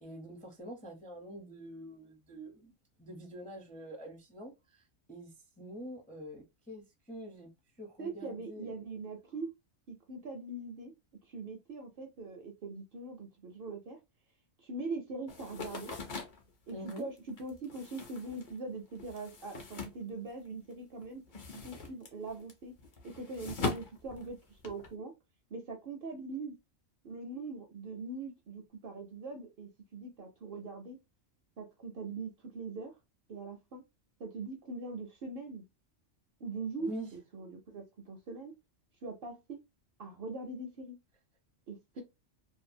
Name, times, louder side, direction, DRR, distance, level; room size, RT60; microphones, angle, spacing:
voice 1, 0.0-2.7 3.0-4.5 5.1-5.3 5.6-7.5 7.8-8.7 16.7-17.1 36.8-37.1, equal, 10° left, 0.4 m, -45 dB
voice 2, 8.0-9.5 9.9-10.9 11.3-14.0 14.6-15.9 16.7-21.2 21.6-22.7 23.0-25.1 25.5-26.6 27.0-31.0 31.6-32.9 33.3-33.8 34.2-35.6 36.4-38.5 39.0-39.6 40.0-41.0 41.7-42.0, right 3 dB, 60° right, 0.6 m, -42 dB
sound 1, 15.3-20.7 21.0-24.9, left 4 dB, 50° left, 0.7 m, -42 dB
2.6 x 2.2 x 2.6 m
omnidirectional pair, 1.3 m